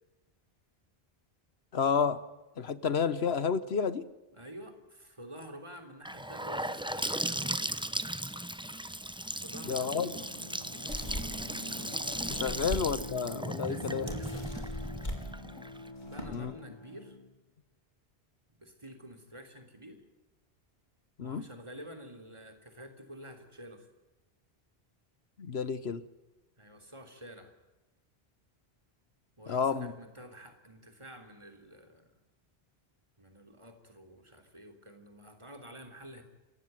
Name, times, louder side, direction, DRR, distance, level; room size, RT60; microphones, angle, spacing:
voice 1, 1.7-2.2 2.6-4.1 9.6-10.2 12.3-14.1 16.3-16.5 21.2-21.5 25.4-26.0 29.5-29.9, left 6 dB, 75° left, 15 dB, 1.3 m, -30 dB
voice 2, 4.3-7.8 9.4-10.6 12.2-12.8 13.5-14.8 16.0-17.2 18.6-20.0 21.2-23.9 26.6-27.5 29.4-32.1 33.2-36.2, equal, 30° right, 5 dB, 3.5 m, -49 dB
Gurgling / Sink (filling or washing) / Bathtub (filling or washing), 6.0-15.9, right 1 dB, 5° right, 0.9 m, -37 dB
Bowed string instrument, 9.6-17.4, left 2 dB, 25° left, 1.1 m, -45 dB
sound 1, 10.9-11.5 12.0-12.9 13.3-13.4 14.1-15.2 15.9-16.4, left 1 dB, 45° left, 4.0 m, -39 dB
28.0 x 15.0 x 9.3 m, 1.1 s
omnidirectional pair, 1.1 m